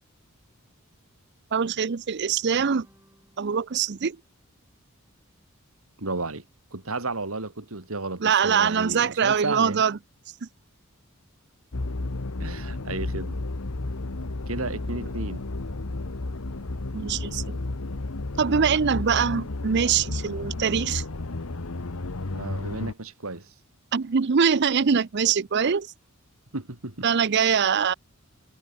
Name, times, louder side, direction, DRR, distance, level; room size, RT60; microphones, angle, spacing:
voice 1, 1.5-2.9 3.4-4.2 8.2-10.0 16.9-17.6 18.4-21.0 23.9-25.9 27.0-27.9, right 6 dB, 50° right, 0.5 m, -23 dB
sound 1, 2.5-5.3, right 1 dB, 10° right, 7.4 m, -60 dB
voice 2, 6.0-6.4 6.7-9.8 12.4-13.4 14.5-15.4 22.3-23.5 26.5-27.1, right 3 dB, 75° right, 2.4 m, -33 dB
sound 2, 11.7-22.9, left 2 dB, 80° left, 1.2 m, -32 dB
head